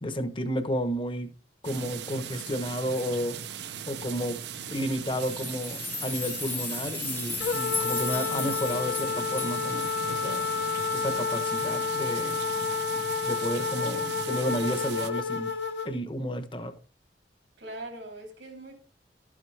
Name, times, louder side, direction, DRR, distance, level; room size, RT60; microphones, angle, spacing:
voice 1, 0.0-1.3 1.6-3.4 3.9-4.4 4.7-10.5 10.9-12.4 13.2-15.5 15.8-16.7, equal, 30° left, 1.0 m, -32 dB
sound 1, 1.6-15.1, right 7 dB, 70° right, 0.7 m, -38 dB
sound 2, 5.1-11.9 12.3-12.4 12.7-12.9 13.4-13.5, left 4 dB, 10° left, 0.7 m, -37 dB
sound 3, 7.4-15.9, left 5 dB, 75° left, 1.1 m, -30 dB
voice 2, 17.6-18.8, right 1 dB, 85° right, 3.3 m, -42 dB
13.0 x 7.4 x 3.3 m
head